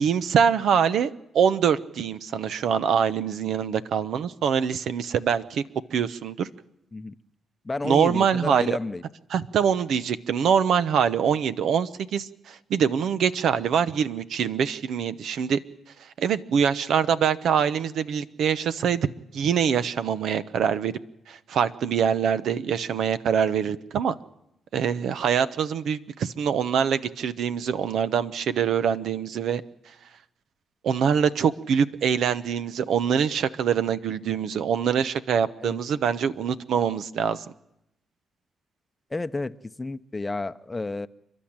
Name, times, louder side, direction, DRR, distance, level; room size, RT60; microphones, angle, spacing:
voice 1, 0.0-5.6 5.9-6.5 7.8-8.8 9.3-15.6 16.0-19.1 19.3-21.0 21.3-24.1 24.7-29.6 30.8-37.4, right 7 dB, 75° right, 12 dB, 0.8 m, -24 dB
voice 2, 7.6-9.0 35.6-35.8 39.1-41.1, left 3 dB, 20° left, 12 dB, 0.7 m, -31 dB
29.5 x 12.0 x 8.8 m, 0.85 s
cardioid pair, 85°, 0 cm